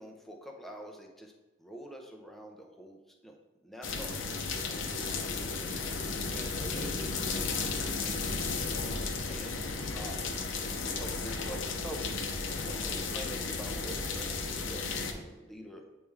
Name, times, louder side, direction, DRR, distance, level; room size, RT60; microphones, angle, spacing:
voice 1, 0.0-1.3 1.6-3.4 3.6-5.7 6.3-8.5 9.3-10.4 11.0-12.1 12.6-15.8, right 1 dB, ahead, 1 dB, 0.7 m, -46 dB
sound 1, 3.8-15.1, left 4 dB, 70° left, 0.7 m, -34 dB
8.6 x 3.2 x 3.5 m, 1.1 s
head